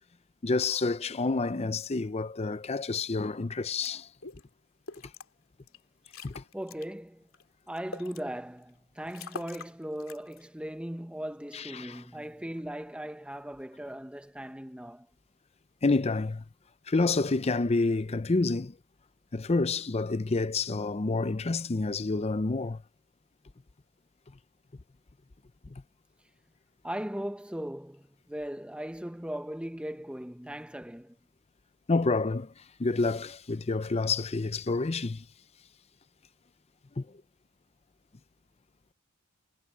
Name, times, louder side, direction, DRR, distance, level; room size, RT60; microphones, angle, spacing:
voice 1, 0.4-4.1 6.2-6.4 11.5-12.0 15.8-16.4 16.9-18.8 19.3-22.8 25.7-25.8 31.9-32.5 32.8-35.2 37.0-37.1, left 3 dB, 30° left, 0.5 m, -28 dB
sound 1, 3.9-4.0 4.2-4.4 4.9-5.3 5.7-5.8 6.1-6.9 7.3-8.2 8.7-8.8 9.1-9.7 10.0-10.4, left 4 dB, 80° left, 2.6 m, -44 dB
voice 2, 6.5-7.3 7.7-15.1 26.8-31.2, equal, 5° right, 0.9 m, -38 dB
head